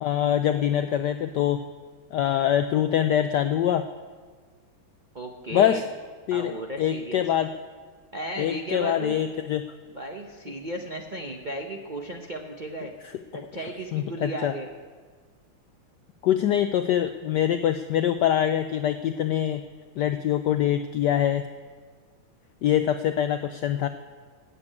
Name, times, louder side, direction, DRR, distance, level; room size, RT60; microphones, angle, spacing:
voice 1, 0.0-1.6 2.1-3.9 5.5-5.8 6.3-7.5 8.4-9.6 13.6-14.5 16.2-19.6 20.0-21.4 22.6-23.9, left 10 dB, 90° left, 9 dB, 0.9 m, -24 dB
voice 2, 5.1-5.8 6.3-7.2 8.1-9.2 9.9-12.9 13.3-14.7, right 1 dB, 75° right, 1 dB, 0.4 m, -35 dB
13.5 x 8.5 x 8.8 m, 1.5 s
omnidirectional pair, 2.4 m